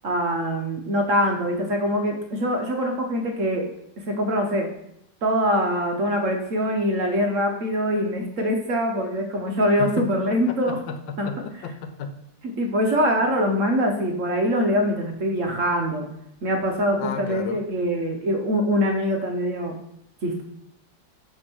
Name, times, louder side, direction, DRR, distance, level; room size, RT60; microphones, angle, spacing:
voice 1, 0.0-3.7 4.1-4.7 5.2-10.8 11.2-11.3 12.4-16.1 16.4-19.7 20.2-20.4, equal, 55° right, 3 dB, 1.0 m, -23 dB
voice 2, 10.5-12.1 13.0-13.2 17.0-17.6, left 5 dB, 90° left, 8 dB, 1.5 m, -33 dB
6.3 x 3.6 x 6.0 m, 0.76 s
omnidirectional pair, 2.0 m